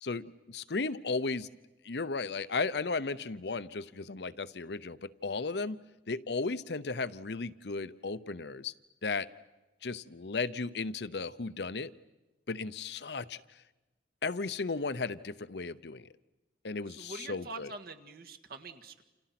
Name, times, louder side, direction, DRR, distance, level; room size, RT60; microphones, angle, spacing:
voice 1, 0.0-1.5 1.8-5.8 6.1-8.7 9.0-9.3 9.8-11.9 12.5-13.4 14.2-16.1 16.6-17.7, left 4 dB, 70° left, 15 dB, 0.8 m, -35 dB
voice 2, 17.0-19.0, right 3 dB, 60° right, 5 dB, 1.8 m, -45 dB
29.0 x 28.5 x 6.0 m, 1.1 s
head